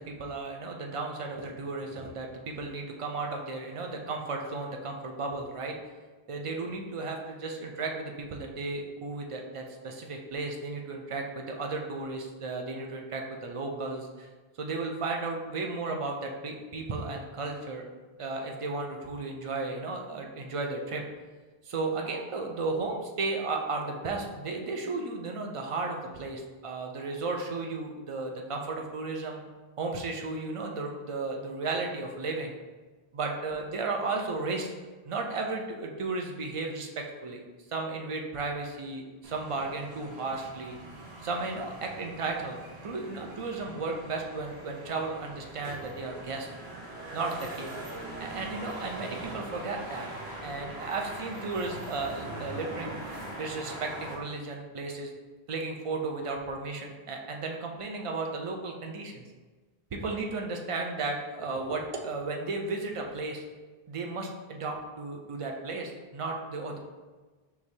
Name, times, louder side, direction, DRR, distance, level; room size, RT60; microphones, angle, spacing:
voice 1, 0.0-5.8 6.3-14.3 14.6-17.8 18.2-21.0 21.6-29.4 29.8-32.6 33.1-34.7 35.0-37.4 37.7-40.8 41.2-42.6 42.8-46.5 47.1-47.8 48.2-50.1 50.4-53.0 53.3-55.1 55.5-59.2 59.9-63.4 63.9-66.8, right 3 dB, 45° right, 2 dB, 0.4 m, -34 dB
sound 1, 39.2-54.1, right 1 dB, 85° right, 1.1 m, -42 dB
4.9 x 3.4 x 2.7 m, 1.3 s
omnidirectional pair, 1.0 m